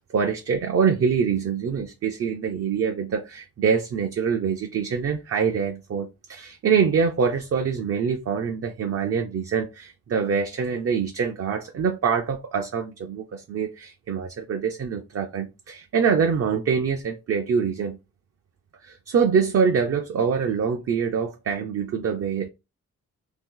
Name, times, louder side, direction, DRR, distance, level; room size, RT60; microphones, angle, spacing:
voice 1, 0.0-18.0 18.8-22.5, right 6 dB, 50° right, 0.5 m, -25 dB
2.8 x 2.5 x 3.7 m
wide cardioid pair, 135°, 31 cm